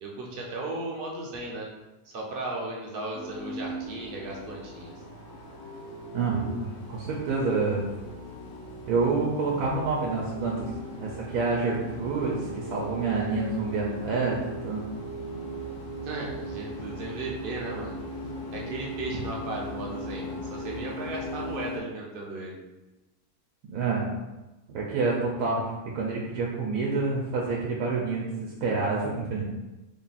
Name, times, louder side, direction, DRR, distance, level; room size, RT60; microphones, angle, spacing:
voice 1, 0.0-1.7 2.0-4.9 16.0-17.9 18.5-22.6, right 2 dB, 55° right, -2 dB, 0.6 m, -36 dB
sound 1, 3.1-21.8, equal, 65° left, 1.0 m, -38 dB
voice 2, 6.1-7.8 8.9-10.7 11.0-14.8 23.7-24.1 24.7-25.6 25.9-29.5, right 4 dB, 80° right, -3 dB, 1.1 m, -28 dB
3.6 x 2.3 x 4.0 m, 1.1 s
omnidirectional pair, 1.6 m